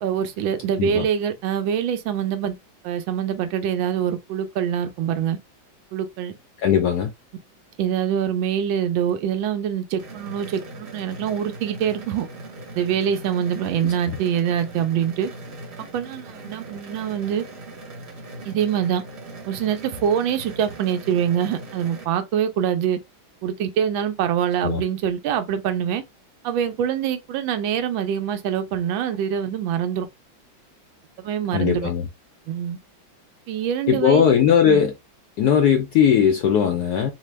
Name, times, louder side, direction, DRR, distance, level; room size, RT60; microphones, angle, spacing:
voice 1, 0.0-2.6 2.8-5.4 5.9-6.3 7.8-12.3 12.7-15.3 15.9-17.4 18.4-19.0 19.4-23.0 23.4-26.0 26.4-30.1 31.2-31.9 32.5-32.8 33.5-34.2 34.7-34.8, right 9 dB, 80° right, 1.4 m, -24 dB
voice 2, 6.6-7.1 13.8-14.2 24.6-24.8 31.5-32.1 33.9-34.9 35.4-37.1, left 8 dB, 75° left, 0.9 m, -19 dB
sound 1, 10.0-22.0, right 2 dB, 55° right, 0.7 m, -40 dB
4.2 x 2.2 x 3.1 m
omnidirectional pair, 2.2 m